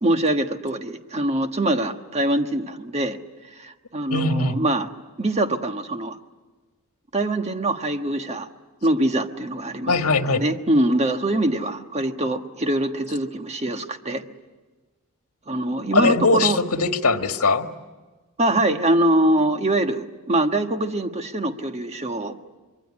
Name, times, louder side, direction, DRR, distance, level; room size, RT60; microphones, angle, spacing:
voice 1, 0.0-3.2 3.6-4.9 5.2-6.2 7.1-8.5 8.8-10.0 10.3-14.2 15.5-16.6 18.4-22.5, right 1 dB, 30° right, 6 dB, 1.4 m, -23 dB
voice 2, 4.1-4.6 9.9-10.4 15.9-17.7, left 3 dB, 75° left, 6 dB, 1.6 m, -20 dB
25.5 x 23.0 x 9.8 m, 1.3 s
head